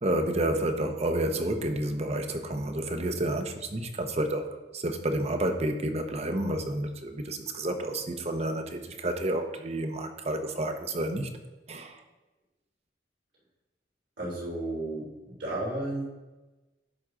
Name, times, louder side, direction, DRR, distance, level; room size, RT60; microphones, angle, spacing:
voice 1, 0.0-4.5 4.7-11.3 11.7-12.0, right 1 dB, 35° right, 6 dB, 0.8 m, -30 dB
voice 2, 14.2-15.1 15.4-16.0, right 1 dB, 80° right, -6 dB, 3.2 m, -32 dB
11.0 x 5.9 x 3.8 m, 1.1 s
head